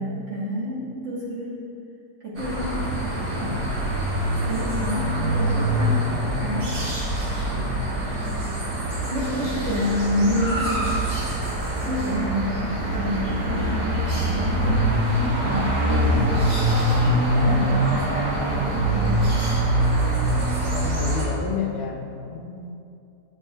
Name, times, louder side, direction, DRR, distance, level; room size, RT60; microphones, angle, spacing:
voice 1, 0.0-1.6 2.2-3.7 4.4-6.8 7.1-7.2 9.1-10.8 11.9-13.9 14.3-16.5 17.0-19.3, equal, 50° right, -7 dB, 1.4 m, -29 dB
sound 1, 2.4-21.3, right 1 dB, 70° right, 2.0 m, -24 dB
voice 2, 5.8-6.4 7.5-7.8 14.5-15.0 17.2-17.9 20.7-22.7, left 5 dB, 40° left, -3 dB, 0.7 m, -32 dB
10.0 x 6.3 x 2.2 m, 2.6 s
omnidirectional pair, 1.8 m